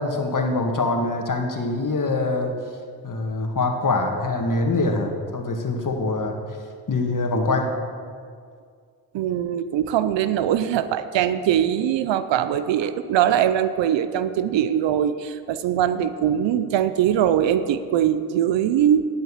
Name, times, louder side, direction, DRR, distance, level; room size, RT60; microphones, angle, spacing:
voice 1, 0.0-2.6 3.0-6.4 6.9-7.7, left 2 dB, 45° left, 3 dB, 2.0 m, -24 dB
voice 2, 9.1-19.1, right 10 dB, 80° right, 12 dB, 0.7 m, -22 dB
11.0 x 7.7 x 7.3 m, 2.1 s
supercardioid pair, 45°, 43 cm